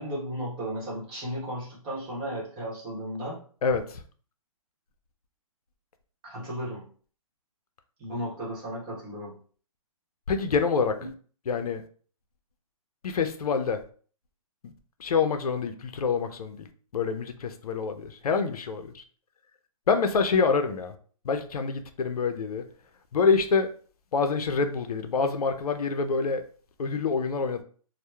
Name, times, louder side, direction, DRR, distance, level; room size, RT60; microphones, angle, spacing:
voice 1, 0.0-3.4 6.2-6.9 8.0-9.4 11.0-11.1, equal, 20° right, 0.9 m, -35 dB
voice 2, 3.6-4.0 10.3-11.0 11.5-11.8 13.0-13.8 14.6-14.7 15.0-16.7 16.9-19.0 19.9-20.9 21.2-22.6 23.1-23.7 24.1-26.4 26.8-27.6, left 5 dB, 85° left, 0.4 m, -26 dB
2.8 x 2.0 x 2.2 m
hypercardioid pair, 150°, 19 cm